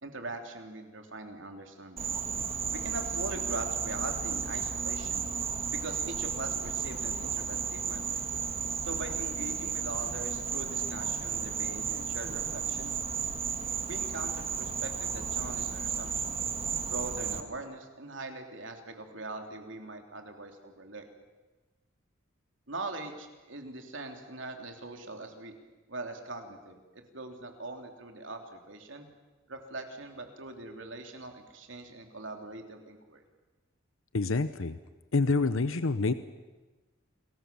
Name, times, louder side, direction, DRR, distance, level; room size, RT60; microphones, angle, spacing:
voice 1, 0.0-2.1 2.7-5.3 5.8-8.2 8.8-12.9 13.9-16.4 16.9-21.0 22.7-25.5 25.9-29.1 29.5-33.2, right 2 dB, 65° right, 4 dB, 3.3 m, -42 dB
Insect, 2.0-17.4, right 6 dB, 30° right, 1.6 m, -33 dB
voice 2, 34.1-34.8 35.1-36.1, left 3 dB, 80° left, 12 dB, 0.9 m, -27 dB
28.5 x 21.0 x 7.1 m, 1.2 s
head